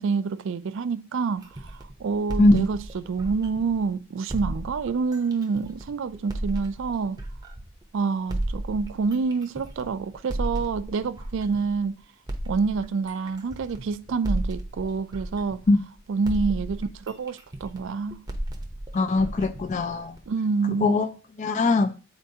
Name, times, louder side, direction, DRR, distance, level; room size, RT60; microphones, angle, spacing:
voice 1, 0.0-7.2 7.9-12.0 12.5-15.6 16.1-18.3 20.3-21.1, right 4 dB, 60° right, 0.4 m, -27 dB
sound 1, 1.4-3.9 4.3-7.8 8.3-11.8 12.3-16.0 16.3-20.3, right 1 dB, 20° right, 0.7 m, -34 dB
voice 2, 18.9-20.2 20.8-21.1 21.4-21.9, left 2 dB, 35° left, 0.4 m, -21 dB
8.8 x 4.3 x 2.7 m
head